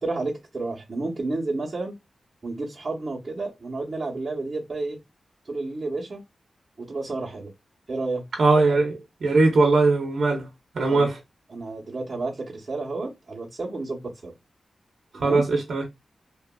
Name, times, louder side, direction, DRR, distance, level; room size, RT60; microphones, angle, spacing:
voice 1, 0.0-1.9 2.4-5.0 5.5-6.2 6.8-7.5 7.9-8.2 10.8-11.1 11.5-14.3 15.1-15.4, right 3 dB, 40° right, 0.9 m, -31 dB
voice 2, 8.4-10.5 10.7-11.2 15.1-15.9, right 3 dB, 80° right, 0.6 m, -20 dB
2.8 x 2.4 x 2.2 m
wide cardioid pair, 80°, 0 cm